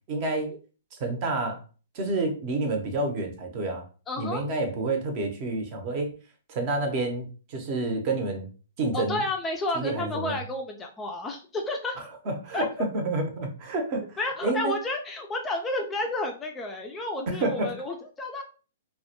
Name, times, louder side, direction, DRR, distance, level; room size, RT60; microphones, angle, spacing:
voice 1, 0.1-0.5 1.0-1.6 1.9-3.8 4.2-6.1 6.5-8.5 8.8-9.2 9.7-10.4 12.0-14.0 14.4-14.7 17.3-17.7, right 2 dB, 40° right, 4 dB, 0.7 m, -29 dB
voice 2, 4.1-4.4 8.9-12.0 12.5-12.7 14.2-18.4, left 2 dB, 15° left, 2 dB, 0.3 m, -31 dB
2.2 x 2.1 x 2.8 m, 0.37 s
hypercardioid pair, 140°, 0 cm